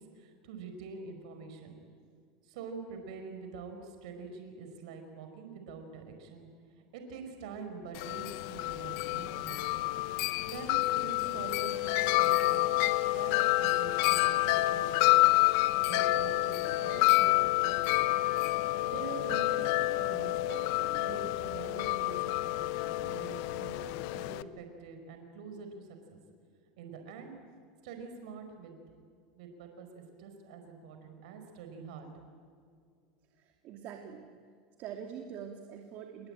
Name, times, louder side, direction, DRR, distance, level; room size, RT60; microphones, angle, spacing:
voice 1, 0.0-1.8 2.4-6.5 6.8-9.7 10.5-12.8 13.1-17.9 18.9-26.2 26.8-27.3 27.8-28.8 29.4-32.1, right 5 dB, 75° right, 6 dB, 4.8 m, -45 dB
Wind chime, 8.0-24.4, left 18 dB, 65° left, 0.9 m, -28 dB
voice 2, 33.4-34.3 34.8-36.3, right 8 dB, 50° right, 3 dB, 2.6 m, -44 dB
29.0 x 21.0 x 8.9 m, 2.2 s
supercardioid pair, 125°, 4 cm